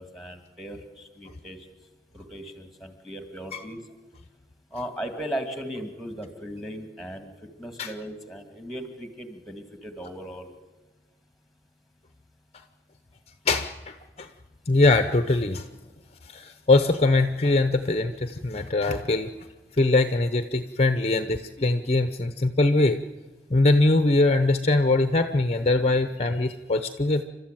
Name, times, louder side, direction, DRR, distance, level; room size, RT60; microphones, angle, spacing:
voice 1, 0.0-1.6 2.1-3.8 4.7-7.3 7.6-10.5, equal, ahead, 6 dB, 2.2 m, -37 dB
voice 2, 13.5-14.3 14.7-15.7 16.3-19.3 19.8-23.0 23.5-27.2, left 2 dB, 35° left, 9 dB, 0.8 m, -22 dB
29.5 x 13.0 x 9.1 m, 1.2 s
head